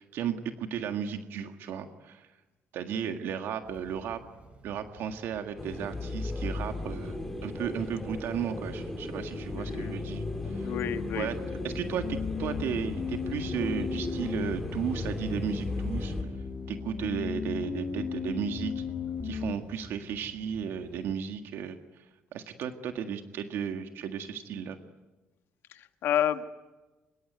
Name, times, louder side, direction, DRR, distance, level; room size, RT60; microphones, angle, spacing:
voice 1, 0.0-2.3 2.7-4.2 4.6-10.7 11.2-11.3 11.6-16.3 16.7-18.8 19.2-22.1 22.3-24.8, right 8 dB, 75° right, 6 dB, 1.8 m, -34 dB
sound 1, 3.6-21.1, right 2 dB, 35° right, 7.8 m, -54 dB
sound 2, 5.6-16.2, left 2 dB, 10° left, 6.2 m, -36 dB
voice 2, 9.5-9.9 10.6-11.3 25.7-26.4, left 10 dB, 70° left, 8 dB, 1.6 m, -30 dB
sound 3, 9.5-19.5, left 6 dB, 35° left, 2.0 m, -36 dB
25.0 x 22.5 x 9.6 m, 1.1 s
cardioid pair, 130°, 4 cm